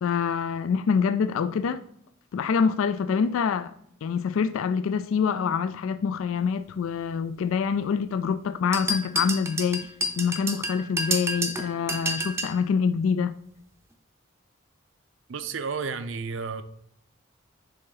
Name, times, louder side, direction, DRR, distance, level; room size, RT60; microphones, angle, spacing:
voice 1, 0.0-1.8 2.3-3.7 4.0-9.9 10.2-13.3, left 6 dB, 85° left, 0.3 m, -26 dB
sound 1, 8.7-12.6, right 1 dB, 15° right, 0.5 m, -29 dB
voice 2, 15.3-16.6, right 5 dB, 75° right, 0.5 m, -32 dB
6.6 x 3.9 x 3.9 m
head